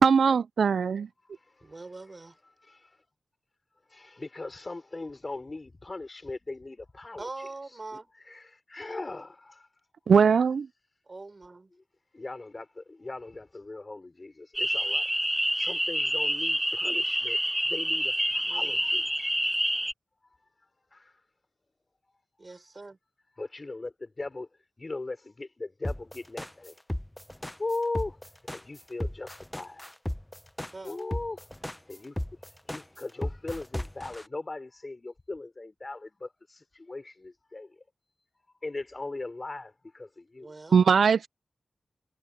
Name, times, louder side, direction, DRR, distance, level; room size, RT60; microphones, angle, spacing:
voice 1, 0.0-1.1 10.1-10.7 40.7-41.3, right 6 dB, 80° right, 0.3 m, -20 dB
voice 2, 1.6-2.4 7.2-8.1 11.1-11.7 18.5-18.8 22.4-23.0 30.7-31.0 40.4-40.8, right 3 dB, 45° right, 6.3 m, -43 dB
voice 3, 3.9-7.5 8.2-9.5 12.1-15.0 15.6-17.4 17.7-19.0 23.4-24.5 24.8-26.7 27.6-28.2 28.5-29.8 30.8-31.4 31.9-32.1 32.7-36.3 36.7-37.7 38.6-40.5, left 2 dB, 40° left, 5.1 m, -38 dB
sound 1, 14.5-19.9, equal, 10° right, 1.0 m, -27 dB
sound 2, 25.8-34.2, left 1 dB, 10° left, 0.8 m, -34 dB
cardioid pair, 45°, 0 cm